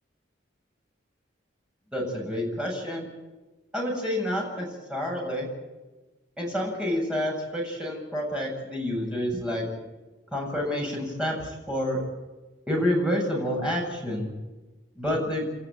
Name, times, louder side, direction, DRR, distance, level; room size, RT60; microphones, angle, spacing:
voice 1, 1.9-3.1 3.7-5.5 6.4-9.7 10.3-12.0 12.7-14.3 15.0-15.5, equal, 5° right, -2 dB, 7.7 m, -28 dB
30.0 x 14.0 x 9.1 m, 1.2 s
head